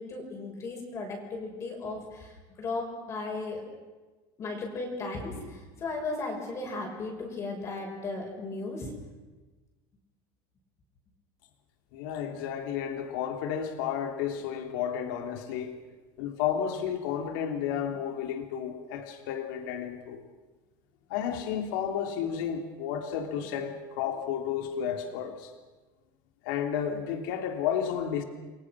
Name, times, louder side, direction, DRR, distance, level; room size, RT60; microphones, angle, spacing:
voice 1, 0.0-3.6 4.4-8.9, left 3 dB, 30° left, 1 dB, 6.2 m, -36 dB
voice 2, 11.9-15.8 16.2-20.2 21.1-25.5 26.4-28.2, left 8 dB, 75° left, 5 dB, 3.0 m, -32 dB
30.0 x 22.5 x 6.2 m, 1.2 s
cardioid pair, 160°, 10 cm